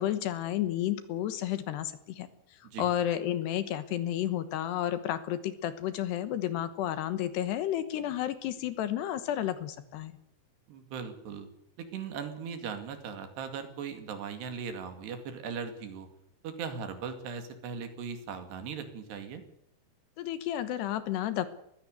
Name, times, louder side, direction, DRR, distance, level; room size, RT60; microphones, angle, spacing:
voice 1, 0.0-2.3 2.8-10.2 20.2-21.5, left 12 dB, 70° left, 13 dB, 3.1 m, -31 dB
voice 2, 10.7-11.5 11.8-16.1 16.4-19.4, right 6 dB, 70° right, 8 dB, 4.3 m, -39 dB
21.0 x 15.5 x 8.1 m, 0.78 s
omnidirectional pair, 5.2 m